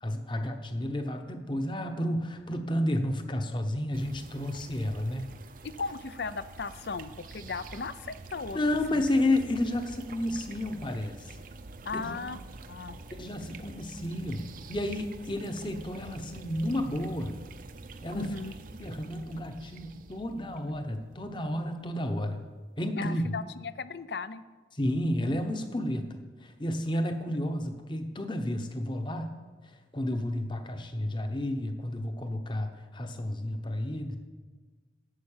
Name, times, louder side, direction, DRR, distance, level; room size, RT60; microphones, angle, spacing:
voice 1, 0.0-5.3 8.5-11.3 11.9-12.2 13.2-17.4 18.0-18.3 18.8-22.4 22.8-23.3 24.7-29.4 29.6-34.2, left 1 dB, 25° left, 7 dB, 0.9 m, -31 dB
sound 1, 3.9-22.1, right 3 dB, 50° right, 0.6 m, -47 dB
voice 2, 5.6-8.6 8.9-9.0 11.8-12.4 12.7-13.0 18.1-18.5 22.9-24.4, left 4 dB, 65° left, 14 dB, 0.5 m, -36 dB
11.5 x 7.6 x 7.3 m, 1.4 s
head